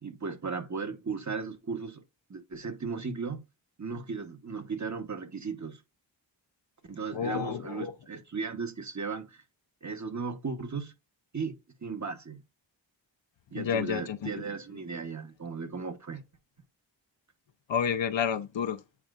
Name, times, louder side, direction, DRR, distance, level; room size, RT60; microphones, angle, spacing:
voice 1, 0.0-2.0 2.3-3.4 3.8-5.8 6.9-9.4 9.8-10.9 11.3-12.4 13.5-16.2, right 5 dB, 35° right, 1.2 m, -36 dB
voice 2, 7.1-7.9 13.6-14.3 17.7-18.8, left 7 dB, 70° left, 0.8 m, -30 dB
8.6 x 4.4 x 2.5 m
cardioid pair, 45°, 47 cm